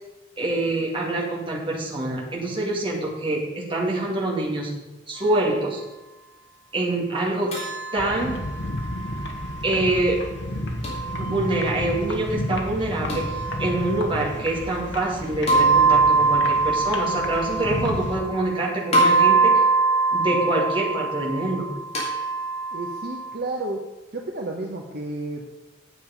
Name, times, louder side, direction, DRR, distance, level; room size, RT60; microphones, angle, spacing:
voice 1, 0.4-4.7 5.1-5.8 6.7-7.6 7.9-8.4 9.6-10.2 11.2-13.2 13.6-19.6 20.1-21.7, right 2 dB, 25° right, -3 dB, 2.3 m, -25 dB
sound 1, 7.5-9.6 10.8-11.8 13.1-14.3 15.5-18.6 18.9-23.3, right 3 dB, 35° left, 2.8 m, -23 dB
sound 2, 8.0-18.2, left 1 dB, 60° left, 1.3 m, -32 dB
voice 2, 22.7-23.8 24.1-25.5, right 2 dB, 55° right, 0 dB, 1.0 m, -31 dB
9.4 x 7.7 x 5.3 m, 1.0 s
head